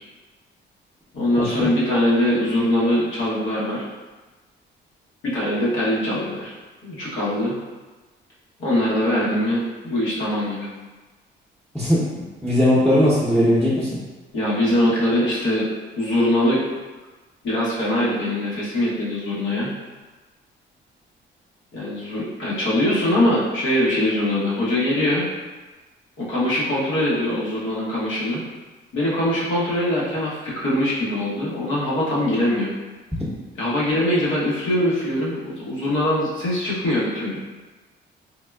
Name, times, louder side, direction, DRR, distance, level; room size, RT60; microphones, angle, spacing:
voice 1, 1.1-3.8 5.2-6.5 6.8-7.6 8.6-10.7 14.3-15.7 16.0-16.6 17.4-19.7 21.7-25.2 26.2-28.4 28.9-32.7 33.6-37.4, left 1 dB, 80° left, -7 dB, 1.0 m, -22 dB
voice 2, 12.4-13.9, equal, ahead, -9 dB, 0.7 m, -18 dB
3.5 x 2.2 x 2.3 m, 1.2 s
cardioid pair, 90°, 20 cm